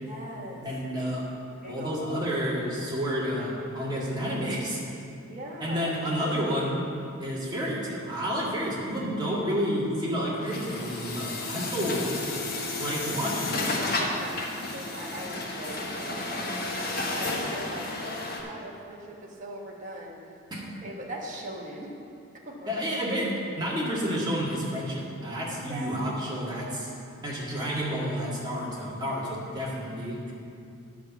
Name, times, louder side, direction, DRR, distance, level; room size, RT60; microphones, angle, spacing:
voice 1, 0.0-0.6 1.6-2.1 5.2-5.9 13.9-20.3 20.8-22.0 22.5-22.9 25.5-26.3, right 1 dB, 40° right, -3 dB, 1.3 m, -40 dB
voice 2, 0.6-1.2 1.7-4.8 5.6-6.8 7.2-12.1 12.8-13.7 20.5-20.7 22.7-26.9 27.2-30.2, equal, 20° right, -6 dB, 2.1 m, -30 dB
Truck, 10.4-18.4, left 2 dB, 45° left, 1.3 m, -32 dB
10.0 x 5.9 x 7.2 m, 2.5 s
head